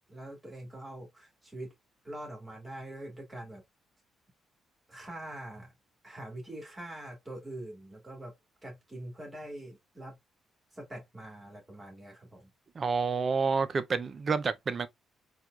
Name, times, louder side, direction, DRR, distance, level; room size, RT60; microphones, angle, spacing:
voice 1, 0.1-1.7 2.0-3.6 4.9-5.7 6.0-8.3 8.6-10.2 10.7-12.5, right 1 dB, 20° right, 1.8 m, -44 dB
voice 2, 12.8-14.9, right 5 dB, 40° right, 0.4 m, -29 dB
4.3 x 2.3 x 2.3 m
cardioid pair, 90°, 0 cm